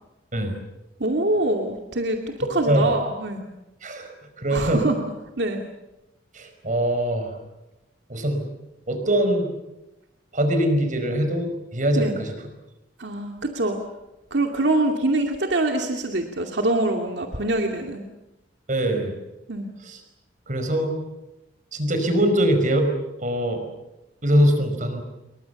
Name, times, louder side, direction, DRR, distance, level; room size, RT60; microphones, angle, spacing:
voice 1, 1.0-3.4 4.5-5.0 5.4-5.6 12.0-12.2 13.0-13.8 14.3-18.1 19.5-19.7, right 2 dB, 65° right, 3 dB, 2.5 m, -24 dB
voice 2, 4.4-4.8 6.3-7.4 8.1-8.5 8.9-9.5 10.3-12.3 18.7-19.1 19.9-20.0 20.5-21.0 21.7-22.9 23.2-23.6 24.2-25.0, right 1 dB, 45° right, 6 dB, 5.2 m, -22 dB
29.0 x 23.0 x 7.1 m, 0.98 s
head